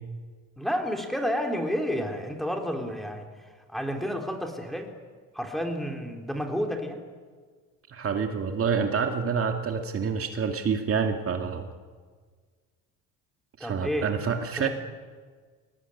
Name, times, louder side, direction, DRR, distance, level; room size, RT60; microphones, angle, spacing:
voice 1, 0.6-4.9 5.3-7.0 13.6-14.1 14.6-14.7, equal, ahead, 3 dB, 3.4 m, -30 dB
voice 2, 7.9-11.7 13.6-14.7, right 6 dB, 45° right, 4 dB, 2.3 m, -27 dB
22.0 x 19.0 x 9.8 m, 1.6 s
cardioid pair, 115°, 32 cm